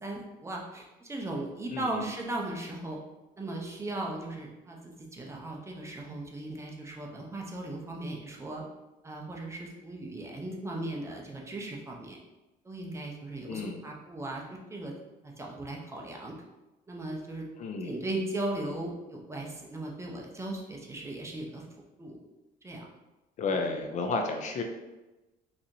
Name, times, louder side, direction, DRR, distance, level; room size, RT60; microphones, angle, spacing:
voice 1, 0.0-3.0 3.4-8.6 9.0-12.2 12.6-14.4 14.7-14.9 15.2-16.3 16.9-17.5 17.8-21.6 22.0-22.2 22.6-22.9 23.5-23.8, right 2 dB, 15° right, -1 dB, 0.7 m, -37 dB
voice 2, 1.7-2.1 13.5-13.8 17.6-17.9 23.4-24.6, left 3 dB, 50° left, 4 dB, 0.4 m, -32 dB
3.9 x 2.9 x 2.6 m, 1.1 s
cardioid pair, 115°, 16 cm